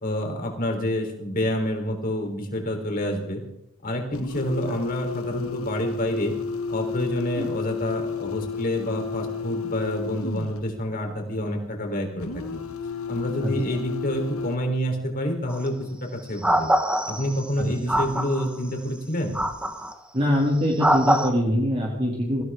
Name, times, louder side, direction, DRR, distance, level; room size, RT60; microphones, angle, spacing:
voice 1, 0.0-3.4 3.8-6.3 6.7-12.6 13.1-16.7 17.1-19.4, equal, 40° left, 2 dB, 3.9 m, -28 dB
sound 1, 4.1-10.7 12.2-14.6, left 5 dB, 85° left, 1.1 m, -32 dB
sound 2, 15.5-15.7 16.4-17.5 17.9-18.5 19.4-19.9 20.8-21.3, right 1 dB, 5° right, 1.1 m, -23 dB
voice 2, 17.6-18.0 20.1-22.4, equal, 30° right, -3 dB, 2.8 m, -24 dB
23.5 x 16.0 x 3.7 m, 0.81 s
head